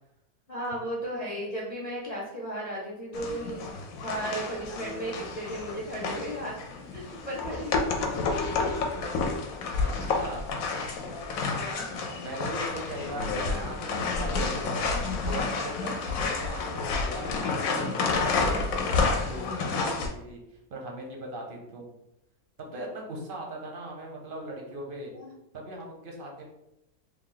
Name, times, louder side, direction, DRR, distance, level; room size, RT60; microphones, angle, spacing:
voice 1, 0.5-3.6 4.0-6.5 6.9-7.9 11.3-11.9 25.1-25.3, right 1 dB, 40° left, -6 dB, 0.6 m, -35 dB
sound 1, 3.1-20.1, left 4 dB, 70° left, 1.0 m, -30 dB
voice 2, 9.8-10.6 11.6-14.9 15.2-20.4 20.7-21.9 22.7-25.1 25.5-26.4, right 1 dB, 55° right, 0 dB, 0.6 m, -39 dB
3.1 x 2.3 x 3.8 m, 0.84 s
omnidirectional pair, 1.6 m